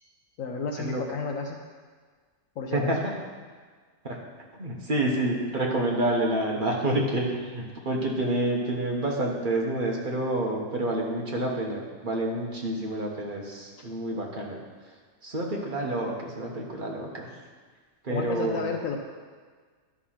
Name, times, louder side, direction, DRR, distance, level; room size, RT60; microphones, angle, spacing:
voice 1, 0.4-1.6 2.6-2.9 18.1-19.0, left 5 dB, 65° left, 2 dB, 1.1 m, -32 dB
voice 2, 2.7-3.1 4.0-4.2 4.5-14.6 15.2-17.3 18.0-18.7, right 1 dB, 35° right, -1 dB, 1.4 m, -28 dB
11.0 x 4.8 x 5.7 m, 1.5 s
omnidirectional pair, 1.6 m